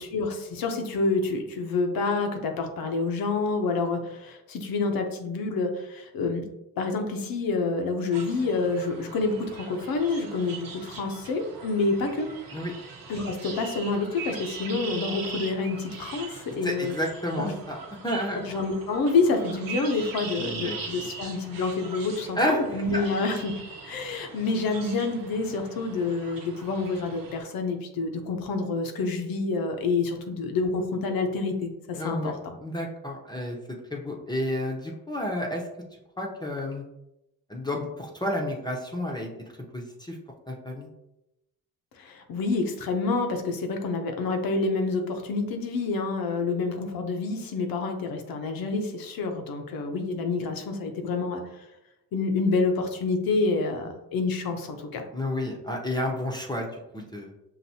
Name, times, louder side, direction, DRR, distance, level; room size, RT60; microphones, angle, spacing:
voice 1, 0.0-6.4 6.8-12.3 13.1-16.9 17.4-17.5 18.3-23.6 23.8-32.4 42.0-51.4 52.1-55.0, left 3 dB, 70° left, 4 dB, 0.8 m, -28 dB
sound 1, 8.1-27.4, right 5 dB, 70° right, 0.9 m, -41 dB
voice 2, 16.6-17.8 18.0-18.4 20.3-20.8 22.4-22.6 22.9-23.1 32.0-33.6 33.9-35.6 36.2-36.8 37.5-39.3 39.7-40.2 40.5-40.9 55.1-57.3, left 1 dB, 10° left, -1 dB, 0.7 m, -30 dB
5.8 x 2.6 x 2.8 m, 0.89 s
cardioid pair, 75°, 36 cm